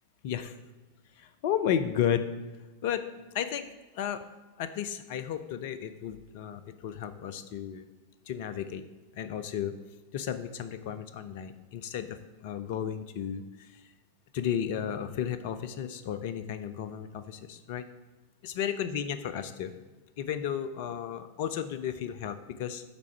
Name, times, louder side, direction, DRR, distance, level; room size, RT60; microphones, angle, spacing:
voice 1, 0.2-0.5 1.2-2.3 2.8-3.0 3.3-4.2 4.6-7.9 8.3-8.8 9.2-9.7 10.1-13.8 14.3-17.8 18.4-19.7 20.2-22.8, left 9 dB, 50° left, 11 dB, 0.5 m, -33 dB
9.0 x 3.7 x 4.6 m, 1.2 s
figure-of-eight pair, 90°, 0 cm